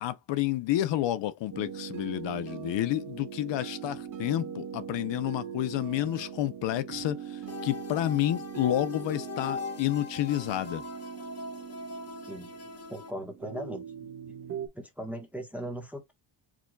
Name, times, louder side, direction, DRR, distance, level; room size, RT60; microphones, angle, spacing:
voice 1, 0.0-10.8, left 13 dB, 75° left, 0.6 m, -30 dB
sound 1, 1.5-14.7, right 8 dB, 45° right, 1.2 m, -41 dB
sound 2, 7.5-13.1, left 4 dB, 35° left, 0.9 m, -40 dB
voice 2, 12.9-14.1 14.7-16.1, equal, 5° right, 0.9 m, -38 dB
4.9 x 2.3 x 3.8 m
cardioid pair, 145°, 44 cm